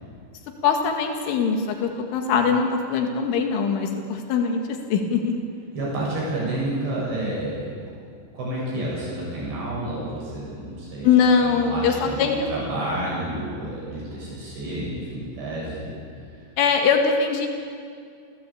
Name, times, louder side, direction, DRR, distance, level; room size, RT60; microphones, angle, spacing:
voice 1, 0.6-4.6 4.9-5.4 11.0-12.5 16.6-17.5, left 6 dB, 90° left, 3 dB, 4.5 m, -21 dB
voice 2, 5.7-7.8 8.3-11.1 11.4-15.9, right 1 dB, 65° right, -6 dB, 9.7 m, -30 dB
28.5 x 16.5 x 8.6 m, 2.3 s
omnidirectional pair, 5.4 m